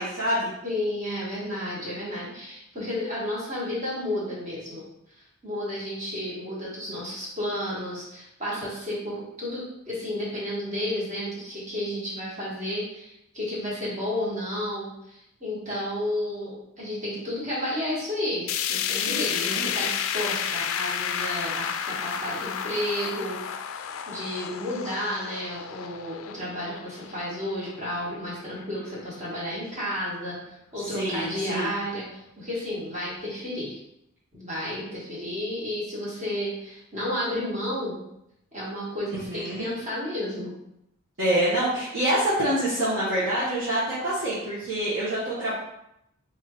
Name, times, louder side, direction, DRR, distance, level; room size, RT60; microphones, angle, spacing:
voice 1, 0.0-0.5 19.0-19.6 31.0-31.7 39.1-39.7 41.2-45.5, right 1 dB, 60° right, -10 dB, 1.1 m, -26 dB
voice 2, 0.6-4.8 5.4-30.4 30.7-33.8 34.3-38.0 38.5-40.6, left 1 dB, 35° right, -7 dB, 1.5 m, -32 dB
sound 1, 18.5-28.6 29.0-29.1 29.5-29.6 30.5-30.6, left 8 dB, 70° left, 0.3 m, -31 dB
3.6 x 3.4 x 3.0 m, 0.81 s
head